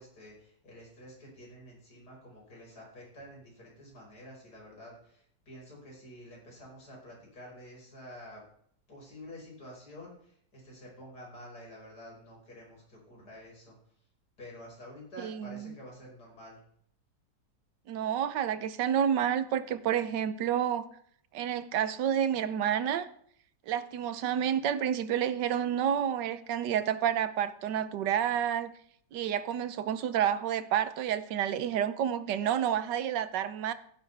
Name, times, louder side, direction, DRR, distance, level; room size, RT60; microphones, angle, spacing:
voice 1, 0.0-8.4 8.9-13.8 14.4-16.6, left 1 dB, 65° left, -2 dB, 5.9 m, -49 dB
voice 2, 15.2-15.7 17.9-20.9 21.3-23.1 23.7-28.7 29.1-33.7, right 9 dB, 80° right, 13 dB, 1.4 m, -29 dB
14.5 x 11.0 x 3.4 m, 0.65 s
omnidirectional pair, 1.9 m